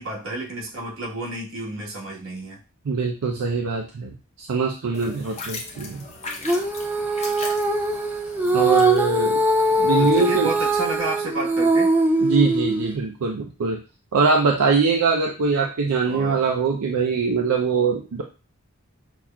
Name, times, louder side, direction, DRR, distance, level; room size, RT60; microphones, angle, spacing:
voice 1, 0.0-2.6 8.4-8.6 10.0-11.9 16.0-16.4, right 2 dB, 65° right, -3 dB, 1.2 m, -31 dB
voice 2, 2.9-6.0 8.5-9.4 9.8-10.5 12.2-13.8 14.1-18.2, right 5 dB, 90° right, 2 dB, 0.4 m, -22 dB
sound 1, 4.9-11.1, left 3 dB, 30° left, 0.6 m, -39 dB
Female singing, 6.4-12.9, right 1 dB, 10° right, 0.3 m, -21 dB
5.8 x 2.4 x 2.2 m, 0.33 s
head